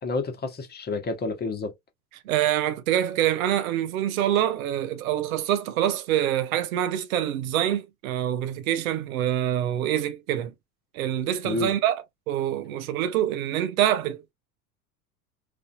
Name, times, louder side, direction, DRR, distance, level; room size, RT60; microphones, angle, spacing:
voice 1, 0.0-1.7 11.4-11.7, left 3 dB, 20° left, 1.0 m, -29 dB
voice 2, 2.3-10.5 10.9-14.3, right 11 dB, 60° right, 0.6 m, -25 dB
3.3 x 2.5 x 2.3 m
figure-of-eight pair, 70°, 46 cm